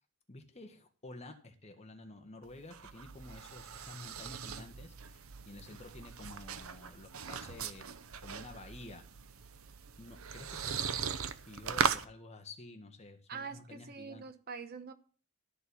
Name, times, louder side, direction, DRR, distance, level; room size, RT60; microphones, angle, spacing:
voice 1, 0.3-7.9 8.2-9.1 10.0-14.2, left 2 dB, 30° left, 1.6 m, -51 dB
sound 1, 2.4-12.0, right 6 dB, 75° right, 0.8 m, -39 dB
voice 2, 13.3-14.9, right 5 dB, 45° right, 1.1 m, -44 dB
13.5 x 4.5 x 8.4 m
head